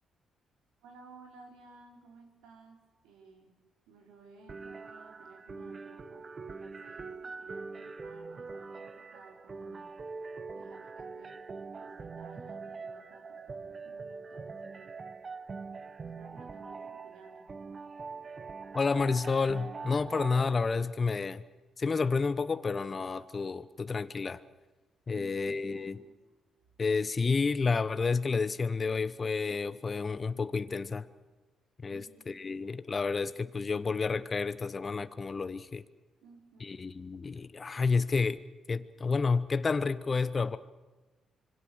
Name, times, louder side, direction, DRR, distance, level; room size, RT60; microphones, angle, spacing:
voice 1, 0.8-3.6 3.9-9.9 10.5-11.4 11.8-15.0 15.4-15.6 16.0-17.5 25.1-26.2 31.9-32.4 36.2-36.9, right 4 dB, 75° right, 4.4 m, -56 dB
sound 1, 4.5-20.5, right 4 dB, 45° right, 1.1 m, -43 dB
voice 2, 18.7-21.4 21.8-24.4 25.1-26.0 26.8-31.1 31.8-35.8 36.6-38.4 38.7-40.6, left 4 dB, 40° left, 1.0 m, -30 dB
26.0 x 23.5 x 6.4 m
hypercardioid pair, 45°, 0 cm